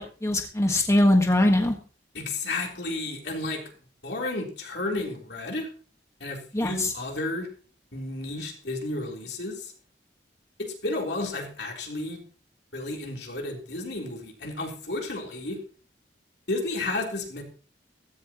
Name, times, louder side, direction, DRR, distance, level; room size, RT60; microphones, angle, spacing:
voice 1, 0.0-1.7 6.5-6.9, left 1 dB, 15° left, 3 dB, 1.5 m, -22 dB
voice 2, 2.1-3.6 4.0-5.7 6.2-7.5 7.9-9.7 10.6-12.2 12.7-15.6 16.5-17.4, left 2 dB, 70° left, 1 dB, 3.7 m, -32 dB
15.5 x 15.0 x 3.0 m, 0.39 s
head